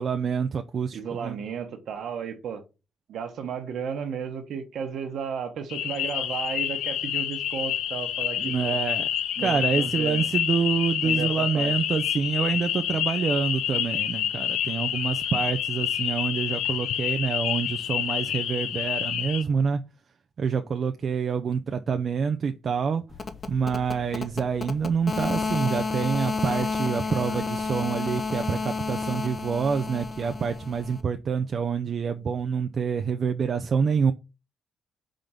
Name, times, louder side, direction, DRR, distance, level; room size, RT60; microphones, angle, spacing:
voice 1, 0.0-1.4 8.4-9.1 9.4-19.8 20.4-23.0 23.5-34.1, right 6 dB, 50° right, 0.5 m, -27 dB
voice 2, 0.9-2.6 3.1-8.8 9.4-10.3 11.0-11.7, right 7 dB, 70° right, 1.3 m, -34 dB
sound 1, 5.7-19.4, left 10 dB, 85° left, 0.6 m, -28 dB
sound 2, 23.1-31.0, left 4 dB, 40° left, 0.8 m, -31 dB
5.1 x 3.8 x 5.8 m
cardioid pair, 90°, 0 cm